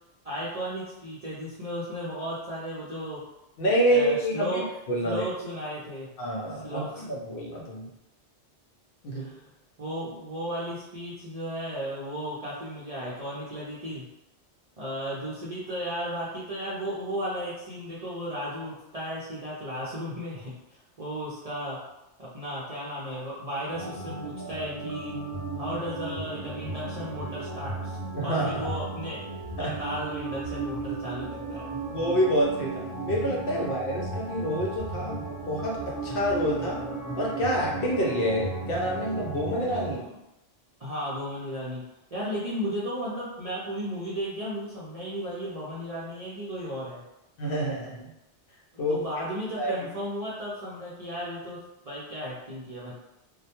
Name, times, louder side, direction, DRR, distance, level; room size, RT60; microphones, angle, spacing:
voice 1, 0.2-3.2 3.9-4.6 5.0-6.1 6.5-7.0 9.1-9.5 9.8-14.1 14.8-20.5 21.0-21.8 22.2-25.2 25.6-29.2 29.6-31.6 40.0-40.2 40.8-41.8 42.1-47.0 48.7-52.9, equal, 50° right, -8 dB, 0.4 m, -35 dB
voice 2, 3.6-5.2 6.2-7.9 9.0-9.3 28.1-28.7 29.6-29.8 31.9-36.8 37.2-40.1 47.4-48.1 48.8-49.0 49.6-49.7, equal, 60° left, -3 dB, 0.7 m, -27 dB
sound 1, 23.7-39.9, right 3 dB, 20° right, 0.8 m, -35 dB
2.2 x 2.1 x 2.8 m, 0.90 s
omnidirectional pair, 1.2 m